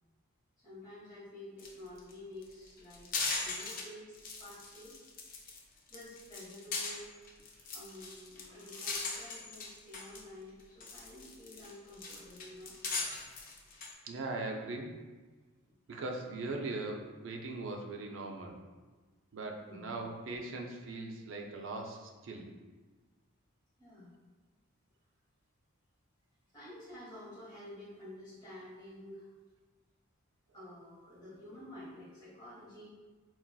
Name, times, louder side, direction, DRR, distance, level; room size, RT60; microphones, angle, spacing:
voice 1, 0.6-3.1 3.4-5.0 5.9-7.1 7.7-12.7 19.6-20.1 23.8-24.1 26.5-29.3 30.5-32.9, left 1 dB, 20° left, -9 dB, 1.0 m, -50 dB
sound 1, 1.6-1.7 2.0-2.1 2.4-3.8 4.1-5.6 5.9-10.2 10.6-13.9, left 3 dB, 40° left, 0.4 m, -39 dB
voice 2, 14.0-14.9 15.9-18.6 19.3-22.5, right 2 dB, 60° right, 2 dB, 0.4 m, -40 dB
3.8 x 2.3 x 2.2 m, 1.3 s
head